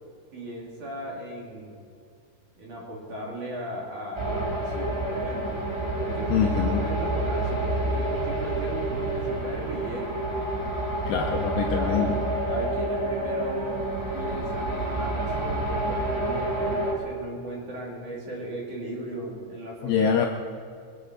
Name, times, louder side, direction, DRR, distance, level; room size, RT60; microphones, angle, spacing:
voice 1, 0.3-1.8 2.6-5.6 6.0-10.1 11.7-12.1 12.5-13.8 14.1-20.3, right 1 dB, 45° right, -3 dB, 3.4 m, -37 dB
sound 1, 4.1-16.9, right 1 dB, 20° right, 0.7 m, -28 dB
voice 2, 6.3-6.8 11.1-12.2 19.8-20.3, left 7 dB, 90° left, 2 dB, 2.4 m, -24 dB
22.5 x 8.7 x 6.4 m, 2.2 s
omnidirectional pair, 5.9 m